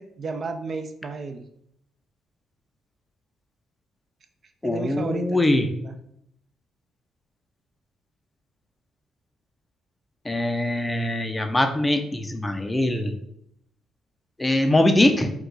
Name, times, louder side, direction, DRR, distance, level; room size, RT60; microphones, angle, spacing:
voice 1, 0.0-1.4 4.6-5.4 5.8-6.0, right 4 dB, 45° right, 7 dB, 0.4 m, -33 dB
voice 2, 4.6-5.7 10.3-13.1 14.4-15.3, left 1 dB, 10° left, 6 dB, 0.5 m, -22 dB
4.8 x 2.3 x 3.8 m, 0.73 s
cardioid pair, 105°, 0 cm